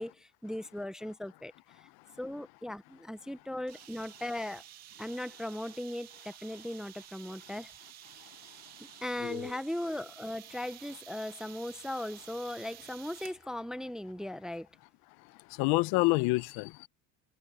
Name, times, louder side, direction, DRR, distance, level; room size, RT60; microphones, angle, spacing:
voice 1, 0.0-1.9 2.2-4.6 5.0-7.7 9.0-14.7, left 1 dB, ahead, 0.4 m, -38 dB
sound 1, 3.7-13.4, right 12 dB, 45° right, 2.0 m, -52 dB
voice 2, 9.2-9.5 15.5-16.9, left 24 dB, 80° left, 0.7 m, -28 dB
cardioid pair, 165°, 36 cm